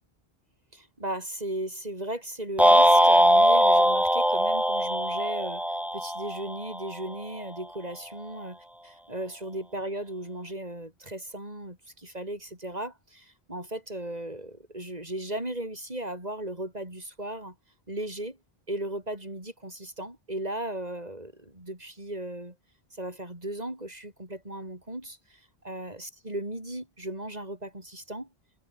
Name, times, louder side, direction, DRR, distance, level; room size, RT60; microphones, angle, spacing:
voice 1, 0.7-17.5 17.9-18.4 18.7-22.5 22.9-28.3, right 1 dB, 40° right, 6.6 m, -36 dB
sound 1, 2.6-6.9, equal, ahead, 4.2 m, -21 dB
omnidirectional pair, 1.1 m